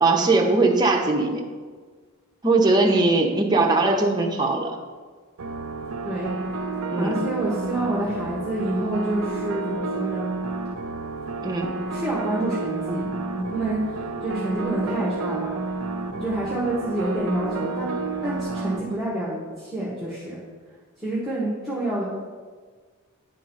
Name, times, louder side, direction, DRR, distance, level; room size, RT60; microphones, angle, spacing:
voice 1, 0.0-1.4 2.4-4.8 6.9-7.3 11.4-11.8, right 3 dB, 20° right, 0 dB, 0.8 m, -20 dB
sound 1, 5.4-18.8, right 3 dB, 75° right, 0.5 m, -30 dB
voice 2, 6.9-10.3 11.9-13.1 13.3-15.5 16.1-17.9 18.2-20.4 21.0-22.1, right 1 dB, ahead, -7 dB, 1.2 m, -28 dB
9.6 x 3.8 x 5.4 m, 1.5 s
head